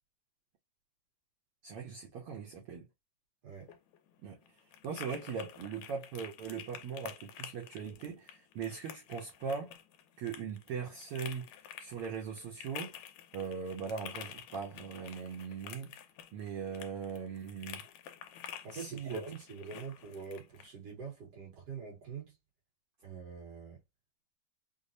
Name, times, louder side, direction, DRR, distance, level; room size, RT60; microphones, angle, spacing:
voice 1, 1.6-2.9 4.2-9.7 10.2-11.5 11.8-13.0 13.3-15.9 16.3-17.8 18.7-19.2, right 6 dB, 75° right, 1.3 m, -40 dB
sound 1, 3.5-20.7, left 10 dB, 80° left, 1.9 m, -50 dB
voice 2, 18.6-22.4 23.0-23.8, right 5 dB, 60° right, 2.1 m, -44 dB
5.1 x 2.0 x 2.6 m
omnidirectional pair, 3.5 m